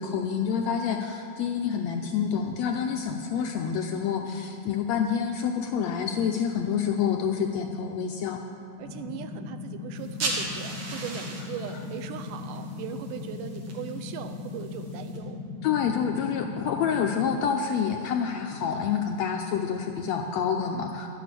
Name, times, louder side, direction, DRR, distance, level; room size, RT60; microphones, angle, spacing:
voice 1, 0.0-8.4 15.6-21.1, left 7 dB, 80° left, 3 dB, 1.6 m, -28 dB
sound 1, 8.8-17.4, left 4 dB, 50° left, 3.6 m, -38 dB
voice 2, 8.8-15.4, right 8 dB, 85° right, 9 dB, 2.3 m, -39 dB
sound 2, 10.0-15.2, right 2 dB, 55° right, 2.5 m, -37 dB
12.5 x 11.0 x 6.8 m, 2.5 s
omnidirectional pair, 3.7 m